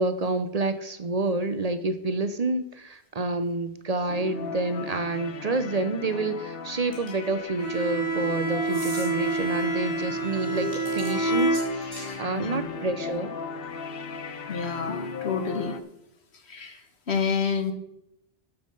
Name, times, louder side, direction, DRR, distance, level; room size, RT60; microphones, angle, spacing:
voice 1, 0.0-13.3, right 2 dB, 45° right, 11 dB, 0.7 m, -28 dB
sound 1, 4.1-15.8, left 5 dB, 65° left, 1.0 m, -37 dB
sound 2, 6.9-7.3 8.7-9.1 10.6-12.2, equal, 10° right, 4.2 m, -41 dB
Bowed string instrument, 7.6-12.2, right 2 dB, 25° right, 5.2 m, -28 dB
voice 2, 14.5-15.8 16.5-16.8 17.1-17.7, left 5 dB, 90° left, 6 dB, 1.7 m, -28 dB
11.5 x 7.1 x 5.3 m, 0.82 s
omnidirectional pair, 1.1 m